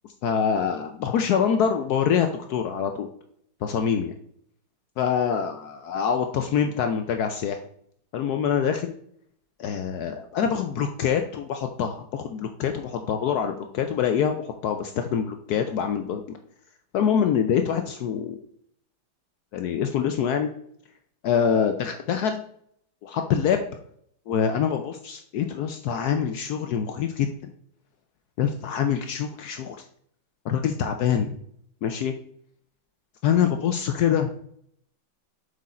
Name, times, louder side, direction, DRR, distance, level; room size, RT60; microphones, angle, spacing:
voice 1, 0.2-3.1 3.6-4.1 5.0-7.6 8.1-8.9 9.6-16.4 16.9-18.4 19.5-20.5 21.2-22.4 23.0-23.6 24.3-27.3 28.4-29.8 30.4-31.3 31.8-32.1 33.2-34.3, left 8 dB, 90° left, 6 dB, 0.8 m, -25 dB
7.7 x 5.0 x 4.2 m, 0.68 s
omnidirectional pair, 2.3 m